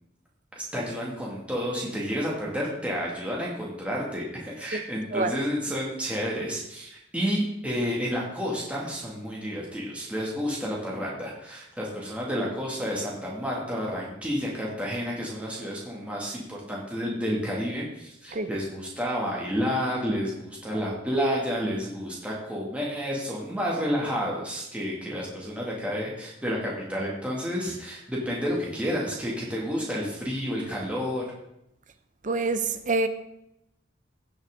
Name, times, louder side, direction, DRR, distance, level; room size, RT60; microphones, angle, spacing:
voice 1, 0.6-31.2, equal, 5° right, 2.3 m, -30 dB
voice 2, 32.2-33.1, right 3 dB, 40° right, 0.7 m, -26 dB
16.5 x 6.3 x 3.8 m
head